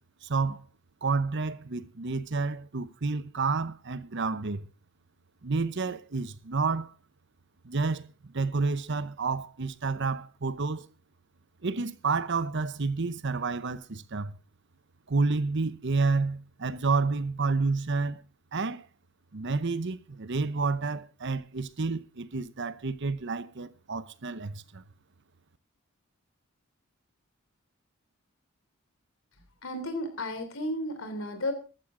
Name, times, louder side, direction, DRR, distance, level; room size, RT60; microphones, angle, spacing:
voice 1, 0.2-0.6 1.0-4.7 5.4-6.9 7.6-10.9 11.6-14.4 15.1-18.2 18.5-18.9 19.3-24.8, right 4 dB, 60° right, 0.9 m, -30 dB
voice 2, 29.6-31.5, left 1 dB, 75° left, 3.3 m, -33 dB
14.0 x 13.5 x 3.8 m
head